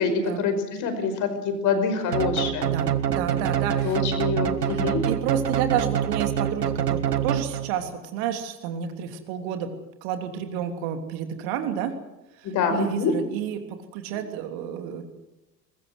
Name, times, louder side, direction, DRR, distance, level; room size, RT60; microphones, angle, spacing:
voice 1, 0.0-2.7 3.8-5.0 12.4-13.1, left 5 dB, 35° left, 8 dB, 5.3 m, -25 dB
sound 1, 2.1-7.9, right 9 dB, 70° right, 1.6 m, -26 dB
voice 2, 2.6-4.0 4.6-9.7 10.0-11.9 12.4-13.6 13.9-15.0, right 9 dB, 45° right, 6 dB, 3.2 m, -30 dB
23.5 x 21.0 x 8.1 m, 0.98 s
figure-of-eight pair, 80°, 49 cm